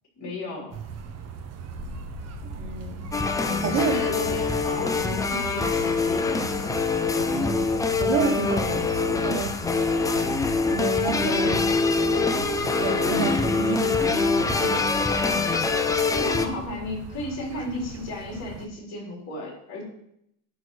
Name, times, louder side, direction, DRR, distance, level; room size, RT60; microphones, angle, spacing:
voice 1, 0.2-0.7 3.4-6.4 16.1-19.8, left 1 dB, 35° left, -2 dB, 4.1 m, -34 dB
sound 1, 0.7-18.7, right 6 dB, 35° right, 1.0 m, -40 dB
sound 2, 1.7-15.4, left 10 dB, 85° left, 1.1 m, -42 dB
voice 2, 2.4-3.1 3.6-4.0 7.3-7.7 7.9-9.6 10.7-11.8 12.8-15.2, right 4 dB, 70° right, 1 dB, 2.5 m, -29 dB
sound 3, 3.1-16.5, left 4 dB, 10° left, 0.4 m, -24 dB
11.0 x 4.2 x 6.3 m, 0.74 s
cardioid pair, 140°, 43 cm